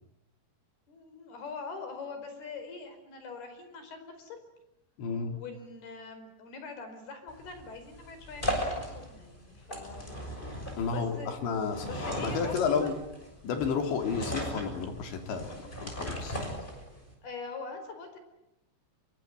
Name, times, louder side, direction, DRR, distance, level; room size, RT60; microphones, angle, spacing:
voice 1, 0.9-4.4 5.3-10.1 10.9-11.5 11.8-13.0 17.2-18.2, left 4 dB, 60° left, 8 dB, 6.5 m, -43 dB
voice 2, 5.0-5.4 10.8-13.0 13.4-16.4, left 5 dB, 90° left, 5 dB, 5.5 m, -31 dB
sound 1, 7.3-17.1, equal, 10° left, 6.4 m, -37 dB
26.0 x 23.5 x 9.2 m, 0.87 s
omnidirectional pair, 5.0 m